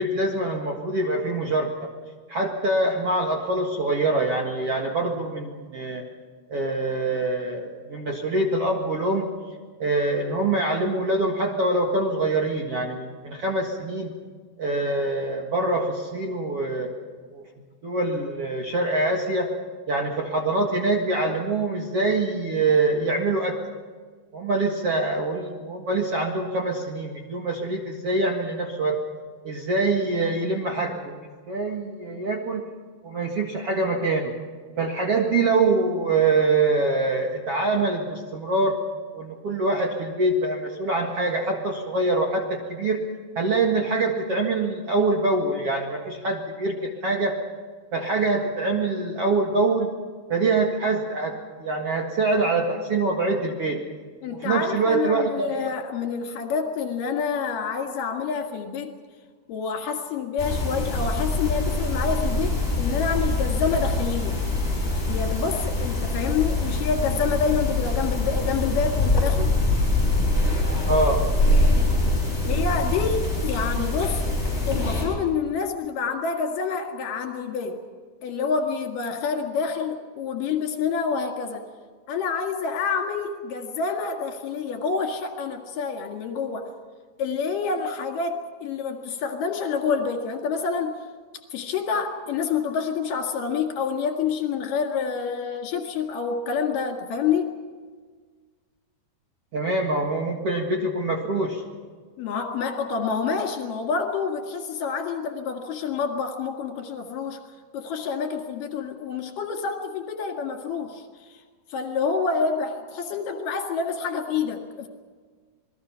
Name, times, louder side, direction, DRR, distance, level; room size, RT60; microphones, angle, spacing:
voice 1, 0.0-1.9 2.3-6.0 6.5-9.3 9.8-14.1 14.6-16.9 17.3-17.4 17.8-19.5 19.9-23.6 24.3-29.0 29.4-32.6 33.0-34.3 34.8-38.8 39.1-43.0 43.4-47.3 47.9-49.9 50.3-53.8 54.3-55.7 70.9-71.2 99.5-101.6, right 2 dB, 50° right, 1 dB, 2.1 m, -24 dB
voice 2, 54.2-59.0 59.5-64.4 65.1-69.6 72.5-74.2 74.7-77.8 78.2-81.7 82.1-86.7 87.2-91.0 91.5-97.5 102.2-107.4 107.7-111.0 111.7-114.9, left 5 dB, 60° left, 3 dB, 3.4 m, -27 dB
sound 1, 60.4-75.1, left 2 dB, 15° left, 6.8 m, -24 dB
27.5 x 20.0 x 5.8 m, 1.5 s
omnidirectional pair, 4.7 m